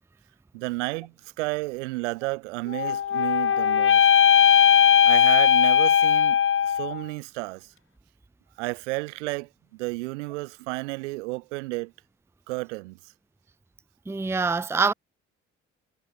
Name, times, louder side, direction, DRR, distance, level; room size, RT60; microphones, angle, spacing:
voice 1, 0.5-4.1 5.0-6.4 6.6-7.7 8.6-11.9 12.5-13.0, right 25 dB, 75° right, 3.2 m, -32 dB
sound 1, 2.7-7.0, left 8 dB, 35° left, 1.1 m, -18 dB
voice 2, 14.1-14.9, right 4 dB, 5° right, 0.7 m, -25 dB
figure-of-eight pair, 45°, 36 cm